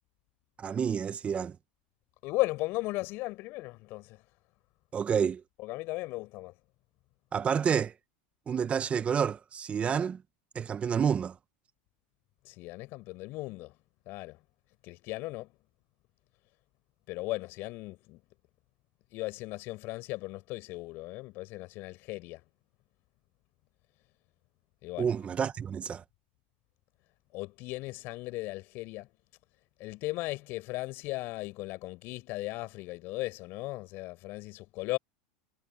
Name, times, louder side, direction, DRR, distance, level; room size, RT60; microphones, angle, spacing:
voice 1, 0.6-1.5 4.9-5.4 7.3-7.9 8.5-10.2 10.5-11.3 25.0-26.0, right 7 dB, 25° right, 1.0 m, -29 dB
voice 2, 2.2-4.2 5.6-6.5 12.4-13.7 14.1-14.4 14.8-15.5 17.1-18.2 19.1-22.4 24.8-25.1 27.3-29.1 29.8-35.0, left 20 dB, 55° left, 5.1 m, -36 dB
hypercardioid pair, 110°, 5 cm